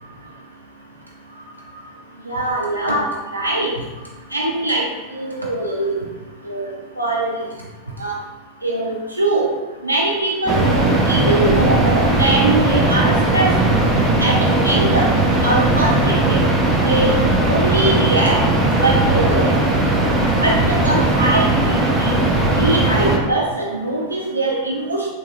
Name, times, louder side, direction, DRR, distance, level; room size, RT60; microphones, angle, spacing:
voice 1, 2.3-3.7 4.3-4.8 5.1-5.9 6.5-7.4 8.0-8.2 8.6-9.5 9.8-13.5 14.2-15.1 15.4-16.4 16.8-18.4 18.8-19.5 20.4-22.3 22.6-25.1, right 2 dB, 85° right, -3 dB, 0.4 m, -21 dB
sound 1, 10.5-23.2, right 2 dB, 20° right, 0.6 m, -17 dB
3.8 x 2.6 x 2.4 m, 1.2 s
figure-of-eight pair, 90°, 0 cm